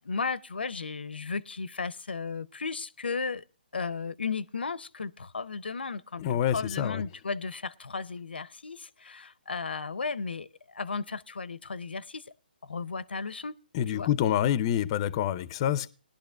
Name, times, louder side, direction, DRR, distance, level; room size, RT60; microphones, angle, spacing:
voice 1, 0.0-3.5 3.7-12.3 12.6-13.5 13.9-14.1, left 4 dB, 80° left, 0.6 m, -35 dB
voice 2, 6.2-7.0 13.7-15.9, left 10 dB, 30° left, 0.5 m, -27 dB
20.5 x 11.5 x 2.3 m
hypercardioid pair, 145°, 5 cm